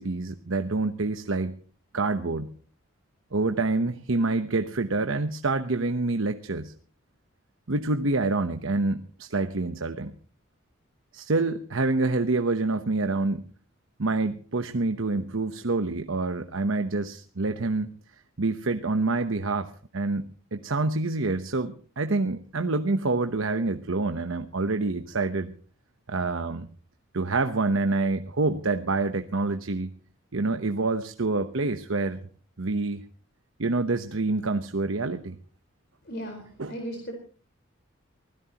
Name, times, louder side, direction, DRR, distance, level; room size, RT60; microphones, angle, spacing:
voice 1, 0.0-1.5 1.9-2.5 3.3-6.7 7.7-10.1 11.1-13.4 14.0-17.9 18.4-25.5 26.1-26.7 27.1-29.9 30.3-32.2 32.6-33.0 33.6-35.4 36.6-36.7, right 3 dB, 75° right, 8 dB, 1.0 m, -27 dB
voice 2, 36.0-37.1, equal, 50° left, 3 dB, 4.4 m, -36 dB
24.0 x 16.5 x 3.0 m, 0.42 s
head